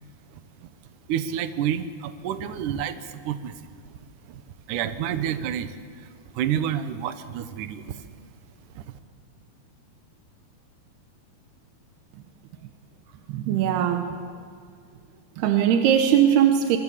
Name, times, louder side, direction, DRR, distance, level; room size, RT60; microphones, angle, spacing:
voice 1, 0.3-0.7 1.1-3.7 4.2-4.4 4.7-8.0 8.8-8.9, right 9 dB, 65° right, 11 dB, 2.3 m, -29 dB
voice 2, 13.3-14.2 15.4-16.8, right 9 dB, 90° right, 6 dB, 3.1 m, -20 dB
25.0 x 24.0 x 7.4 m, 2.1 s
omnidirectional pair, 4.4 m